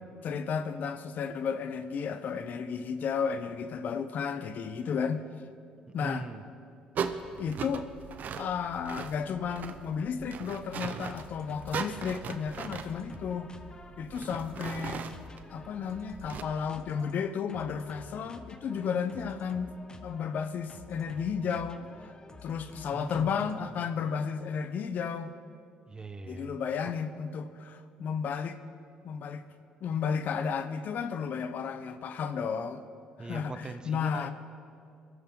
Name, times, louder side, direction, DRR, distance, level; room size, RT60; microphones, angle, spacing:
voice 1, 0.2-5.2 5.9-6.3 7.4-7.9 8.4-13.5 14.0-15.0 15.5-19.7 20.0-21.8 22.4-25.3 26.3-28.6 29.0-29.4 29.8-32.8 33.2-34.3, left 6 dB, 60° left, 11 dB, 0.9 m, -33 dB
voice 2, 6.0-6.4 22.9-23.5 25.9-26.6 33.2-34.3, right 3 dB, 25° right, 10 dB, 1.0 m, -41 dB
sound 1, 6.9-16.4, right 6 dB, 55° right, 0.9 m, -39 dB
sound 2, 11.1-23.9, left 3 dB, 25° left, 1.0 m, -50 dB
21.5 x 13.0 x 3.9 m, 2.5 s
supercardioid pair, 70°, 3 cm